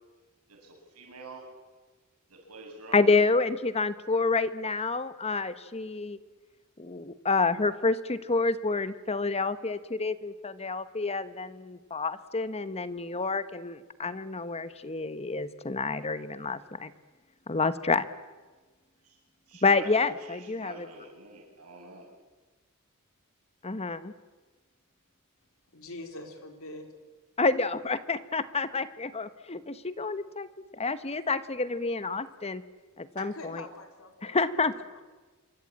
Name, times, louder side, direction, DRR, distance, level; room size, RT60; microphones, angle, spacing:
voice 1, 0.5-1.5 2.3-3.0 19.0-19.2 19.5-19.9 20.3-22.1, right 3 dB, 90° right, 1 dB, 7.6 m, -47 dB
voice 2, 2.9-6.2 6.8-16.9 17.5-18.1 19.6-20.9 23.6-24.1 27.4-32.6 33.0-33.6 34.2-34.7, left 3 dB, 30° left, 13 dB, 1.2 m, -28 dB
voice 3, 25.7-26.9 33.2-35.0, left 2 dB, 65° left, 5 dB, 4.0 m, -44 dB
26.5 x 23.5 x 8.8 m, 1.3 s
head